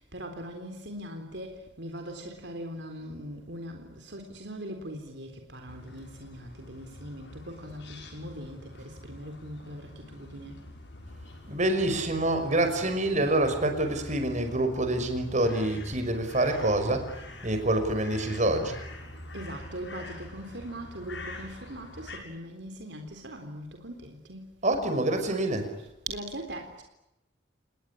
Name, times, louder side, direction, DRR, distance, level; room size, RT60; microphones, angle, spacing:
voice 1, 0.0-10.6 19.3-24.5 26.1-26.8, right 1 dB, 70° right, 5 dB, 3.8 m, -41 dB
sound 1, 5.7-22.2, left 1 dB, 80° left, 7.0 m, -45 dB
voice 2, 11.5-17.1 17.4-18.8 24.6-25.7, right 1 dB, 45° right, 7 dB, 5.7 m, -26 dB
29.5 x 20.5 x 10.0 m, 0.89 s
head